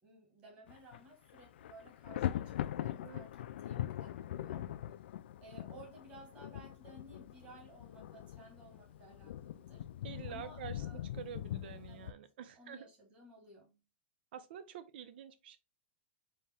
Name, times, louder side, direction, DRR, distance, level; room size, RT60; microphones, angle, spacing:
voice 1, 0.0-2.5 2.8-4.7 5.4-9.8 10.2-11.1 11.9-13.8, right 1 dB, 20° right, 1.6 m, -57 dB
Thunder, 0.7-1.0 1.3-12.1, left 12 dB, 85° left, 0.3 m, -42 dB
voice 2, 10.0-12.9 14.3-15.6, right 8 dB, 65° right, 0.7 m, -48 dB
4.2 x 3.1 x 3.5 m
supercardioid pair, 175°, 6 cm